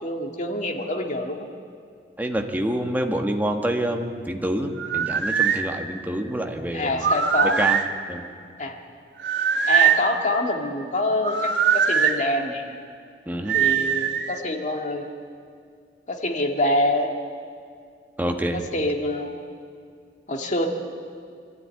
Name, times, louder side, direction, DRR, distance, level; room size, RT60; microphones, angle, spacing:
voice 1, 0.0-1.5 6.7-7.6 8.6-8.8 9.7-12.8 13.5-15.0 16.1-17.1 18.5-19.5 20.3-20.7, left 1 dB, 45° left, 2 dB, 2.1 m, -26 dB
voice 2, 2.2-7.1 7.4-7.8 8.1-8.3 13.3-13.6 18.2-18.6, right 1 dB, 10° right, 3 dB, 1.4 m, -27 dB
sound 1, 4.8-5.6 7.0-7.9 9.2-10.1 11.2-12.2 13.5-14.4, right 7 dB, 85° right, 1.4 m, -21 dB
24.5 x 12.5 x 9.6 m, 2.2 s
head